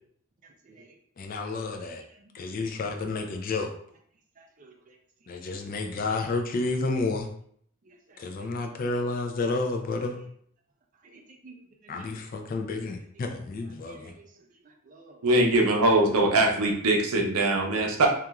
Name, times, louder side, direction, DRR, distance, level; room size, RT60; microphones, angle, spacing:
voice 1, 1.2-2.0 2.3-3.7 5.3-7.3 8.2-10.2 11.9-14.1, left 3 dB, 40° left, 3 dB, 0.3 m, -30 dB
voice 2, 4.4-5.0 7.9-8.2 11.0-11.5 11.8-12.1 13.8-14.2 14.9-15.2, right 3 dB, 35° right, 3 dB, 0.4 m, -52 dB
voice 3, 15.2-18.1, right 2 dB, 90° right, 1 dB, 0.6 m, -22 dB
2.9 x 2.4 x 2.3 m, 0.63 s
head